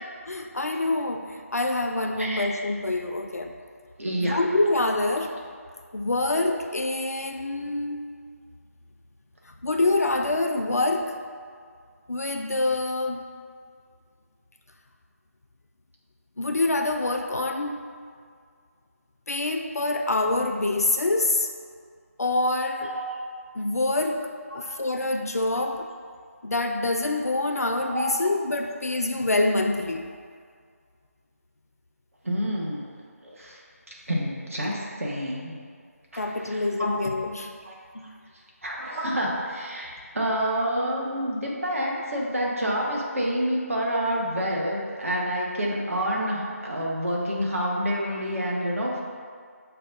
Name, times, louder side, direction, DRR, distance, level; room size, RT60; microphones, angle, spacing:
voice 1, 0.3-3.5 4.2-5.3 5.9-8.1 9.6-11.1 12.1-13.2 16.4-17.8 19.3-21.5 22.2-22.9 23.5-24.2 24.5-25.9 26.4-30.0 36.2-37.5 37.9-38.1, left 2 dB, 70° left, 4 dB, 0.4 m, -26 dB
voice 2, 4.0-4.4 22.8-23.2 24.5-24.7 27.9-28.0 32.2-32.8 33.2-33.6 34.1-35.6 36.1-36.9 37.6-37.8 38.6-49.0, equal, 60° right, -3 dB, 0.9 m, -28 dB
6.6 x 2.3 x 2.5 m, 2.1 s
figure-of-eight pair, 160°, 8 cm